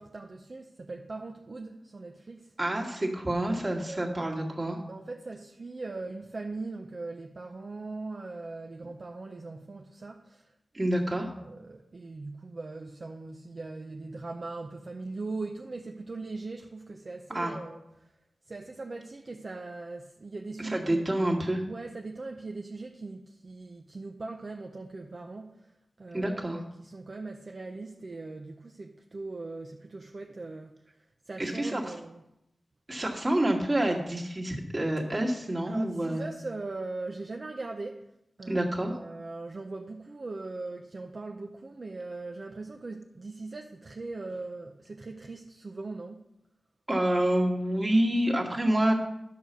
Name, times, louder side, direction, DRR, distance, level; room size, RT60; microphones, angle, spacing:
voice 1, 0.0-2.5 3.7-4.3 4.9-10.5 11.4-17.8 18.5-21.0 21.7-25.6 26.0-30.8 31.3-32.2 35.7-38.1 38.4-46.2, right 3 dB, 50° right, 0.7 m, -40 dB
voice 2, 2.6-4.8 10.7-11.3 17.3-17.5 20.6-21.6 26.1-26.6 31.4-31.9 32.9-36.3 38.5-39.0 46.9-48.9, right 1 dB, 30° right, 2.0 m, -28 dB
11.0 x 4.8 x 6.8 m
wide cardioid pair, 90°, 0 cm